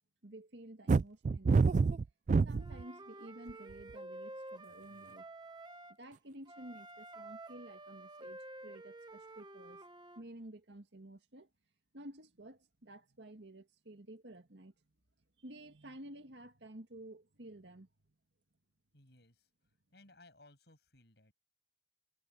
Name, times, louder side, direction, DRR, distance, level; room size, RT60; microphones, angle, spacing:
voice 1, 0.2-1.9 2.4-5.3 6.0-9.8 10.2-11.5 11.9-14.7 15.4-17.9, right 1 dB, 80° right, 2.0 m, -52 dB
sound 1, 0.9-2.8 3.5-3.9, right 4 dB, 45° right, 0.3 m, -27 dB
Wind instrument woodwind instrument, 2.6-6.0 6.5-10.2, right 2 dB, 25° right, 1.2 m, -50 dB
voice 2, 18.9-19.5 19.9-21.3, left 2 dB, 65° left, 8.0 m, -62 dB
head